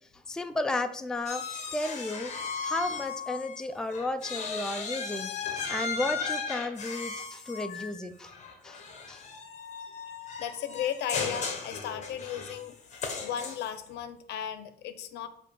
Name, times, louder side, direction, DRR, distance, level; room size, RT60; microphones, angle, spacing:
voice 1, 0.3-8.3 8.6-8.8 9.1-9.2, left 2 dB, 5° left, 8 dB, 0.3 m, -33 dB
sound 1, 1.3-3.6 3.9-13.9, left 5 dB, 45° left, 1.1 m, -36 dB
voice 2, 10.4-12.8 13.2-15.3, left 9 dB, 85° left, 11 dB, 0.6 m, -35 dB
6.8 x 2.8 x 5.1 m, 0.68 s
cardioid pair, 135°, 17 cm